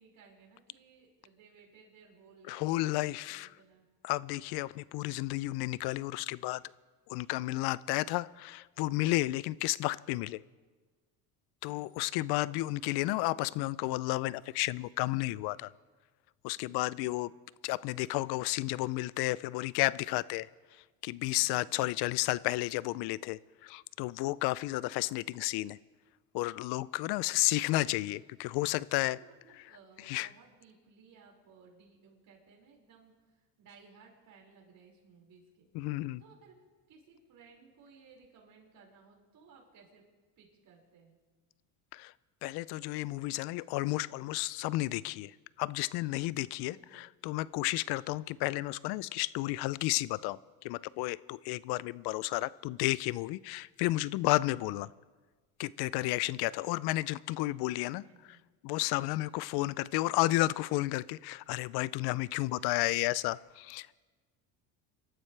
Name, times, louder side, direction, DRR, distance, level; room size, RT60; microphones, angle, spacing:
voice 1, 0.0-3.8 11.6-12.1 16.5-17.0 21.2-21.6 27.2-27.9 29.1-35.7 36.2-36.6 36.9-40.0 40.4-41.2 46.7-47.1 58.0-58.4, right 5 dB, 55° right, -2 dB, 5.4 m, -60 dB
voice 2, 2.5-3.5 4.0-6.6 7.1-10.4 11.6-15.7 16.4-17.3 17.6-20.5 21.0-25.8 26.3-29.2 30.0-30.3 35.7-36.2 41.9-42.1 42.4-50.4 50.6-54.9 55.6-58.0 58.6-64.0, left 18 dB, 70° left, 20 dB, 0.5 m, -32 dB
26.0 x 13.5 x 3.3 m, 1.3 s
supercardioid pair, 105°, 41 cm